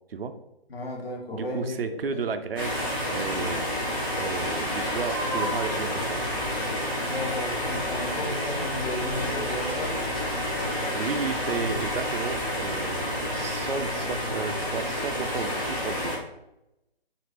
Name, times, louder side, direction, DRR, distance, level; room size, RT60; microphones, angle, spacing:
voice 1, 0.7-1.7 2.1-2.2 7.0-10.0, left 1 dB, 70° left, -1 dB, 1.0 m, -34 dB
voice 2, 1.3-6.3 10.6-16.1, right 5 dB, 65° right, 9 dB, 0.4 m, -33 dB
sound 1, 2.6-16.2, left 1 dB, 20° left, 0.7 m, -29 dB
3.0 x 2.6 x 2.9 m, 0.86 s
figure-of-eight pair, 155°, 31 cm